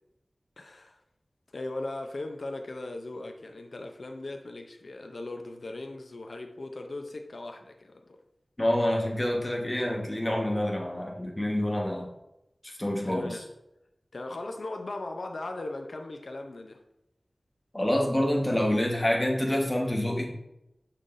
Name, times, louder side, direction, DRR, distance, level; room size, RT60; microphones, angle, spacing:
voice 1, 0.6-1.0 1.5-8.2 13.1-13.4 14.1-16.8, left 2 dB, 80° left, 5 dB, 0.6 m, -38 dB
voice 2, 8.6-12.1 12.6-13.4 17.7-20.4, left 1 dB, 25° left, 0 dB, 1.3 m, -27 dB
6.5 x 5.7 x 2.6 m, 0.86 s
wide cardioid pair, 55°, 0 cm